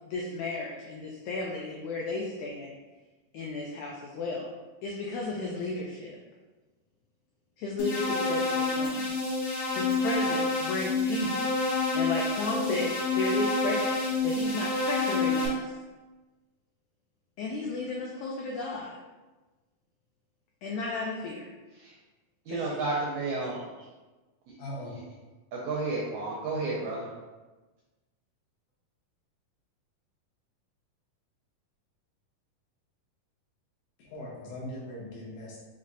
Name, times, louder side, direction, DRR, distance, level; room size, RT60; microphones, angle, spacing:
voice 1, 0.1-2.7 3.3-4.5 4.8-6.2 7.6-9.1 9.7-11.4 11.9-15.7 17.4-18.9 20.6-21.5 22.5-22.8 23.4-23.6, left 3 dB, 85° left, -2 dB, 1.7 m, -34 dB
sound 1, 7.8-15.5, left 3 dB, 55° left, 1.9 m, -28 dB
voice 2, 22.5-23.6 24.9-25.0 25.6-27.1, right 3 dB, 80° right, -5 dB, 1.6 m, -31 dB
voice 3, 24.6-24.9 34.0-35.6, left 1 dB, 70° left, -5 dB, 2.1 m, -40 dB
5.5 x 3.1 x 2.6 m, 1.2 s
omnidirectional pair, 3.9 m